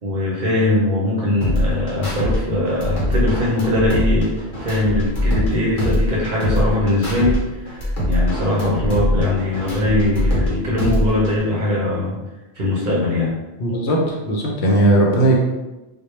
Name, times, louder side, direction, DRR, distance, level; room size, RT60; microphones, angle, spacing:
voice 1, 0.0-4.3 4.6-12.2 12.6-13.4, left 2 dB, 55° right, -5 dB, 0.6 m, -21 dB
sound 1, 1.4-2.4 2.7-5.5 5.8-7.4 7.7-10.5 10.8-11.4, equal, 50° left, 0.9 m, -22 dB
voice 2, 13.6-15.4, right 1 dB, 75° left, -1 dB, 0.8 m, -17 dB
2.2 x 2.1 x 3.0 m, 1.1 s
omnidirectional pair, 1.2 m